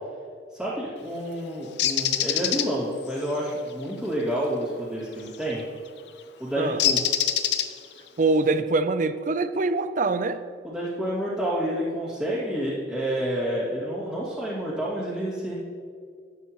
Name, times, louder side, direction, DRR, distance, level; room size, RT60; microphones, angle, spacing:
voice 1, 0.5-5.6 6.4-7.0 10.6-15.5, equal, ahead, -11 dB, 2.2 m, -29 dB
Bird, 1.8-2.7 5.3-5.5 6.8-8.0, left 10 dB, 65° left, 0.6 m, -24 dB
voice 2, 8.2-10.4, right 3 dB, 45° right, 12 dB, 0.5 m, -24 dB
11.5 x 9.9 x 3.0 m, 2.1 s
head